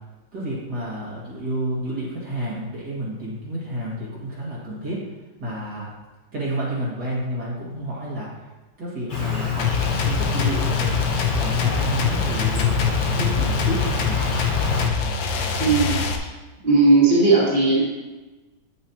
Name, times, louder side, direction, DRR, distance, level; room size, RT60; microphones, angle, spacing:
voice 1, 0.3-5.0 5.4-5.9 6.3-8.5 8.8-9.7 10.0-11.0 11.3-14.2, right 1 dB, 60° right, -6 dB, 2.5 m, -30 dB
Insect, 9.1-14.9, left 5 dB, 30° left, 1.1 m, -26 dB
sound 1, 9.6-16.2, left 5 dB, 80° left, 1.5 m, -25 dB
voice 2, 15.6-16.0 16.6-17.8, right 3 dB, 25° right, -7 dB, 2.2 m, -16 dB
9.3 x 7.4 x 2.9 m, 1.2 s
omnidirectional pair, 2.0 m